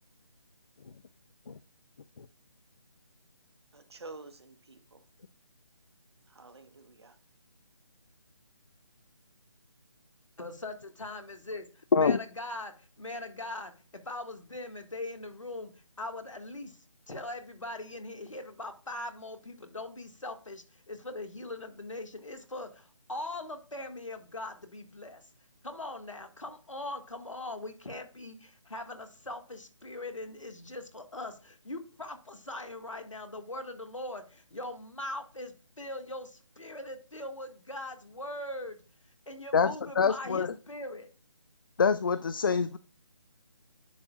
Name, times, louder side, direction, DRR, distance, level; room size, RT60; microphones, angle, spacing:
voice 1, 3.7-5.0 6.3-7.1, right 3 dB, 55° right, 9 dB, 1.3 m, -49 dB
voice 2, 10.4-15.7 16.0-16.8 17.1-25.2 25.6-38.8 39.3-41.1, left 2 dB, 80° left, 7 dB, 1.9 m, -41 dB
voice 3, 39.5-40.5 41.8-42.8, left 5 dB, 45° left, 14 dB, 0.4 m, -25 dB
10.0 x 6.5 x 2.4 m, 0.37 s
figure-of-eight pair, 150°, 16 cm